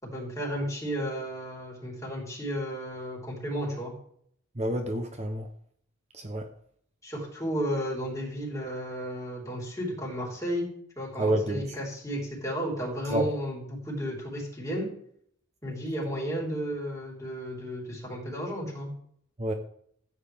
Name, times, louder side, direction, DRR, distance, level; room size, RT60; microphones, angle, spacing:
voice 1, 0.0-3.9 7.0-10.7 11.0-14.9 15.6-18.9, equal, 15° left, 4.2 m, -33 dB
voice 2, 4.6-5.5 6.1-6.5 11.2-11.7 13.1-13.3 19.4-19.5, right 1 dB, 35° right, 0.9 m, -28 dB
14.5 x 9.1 x 3.6 m
head